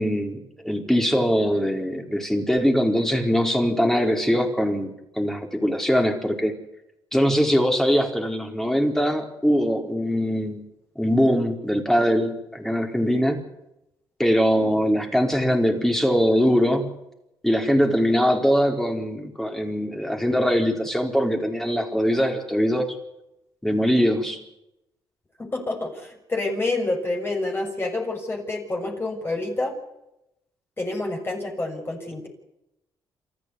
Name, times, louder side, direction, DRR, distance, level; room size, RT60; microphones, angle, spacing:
voice 1, 0.0-4.9 5.2-6.5 7.1-10.7 11.0-13.4 14.2-17.0 17.4-22.9 23.6-24.4, equal, 5° left, 3 dB, 4.6 m, -22 dB
voice 2, 25.4-29.8 30.8-32.3, left 2 dB, 25° left, 1 dB, 6.4 m, -28 dB
27.5 x 14.0 x 9.7 m, 0.88 s
cardioid pair, 85°, 9 cm